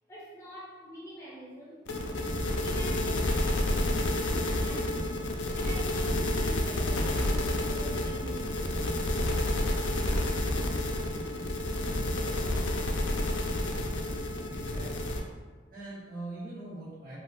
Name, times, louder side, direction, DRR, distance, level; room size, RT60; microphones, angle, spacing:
voice 1, 0.1-1.8 2.4-5.1 5.5-9.2, equal, 15° left, -6 dB, 0.5 m, -47 dB
sound 1, 1.9-15.2, left 1 dB, 75° left, 0.4 m, -29 dB
voice 2, 14.5-15.1 15.7-17.2, right 2 dB, 45° right, -9 dB, 1.1 m, -41 dB
3.5 x 2.3 x 2.5 m, 1.5 s
head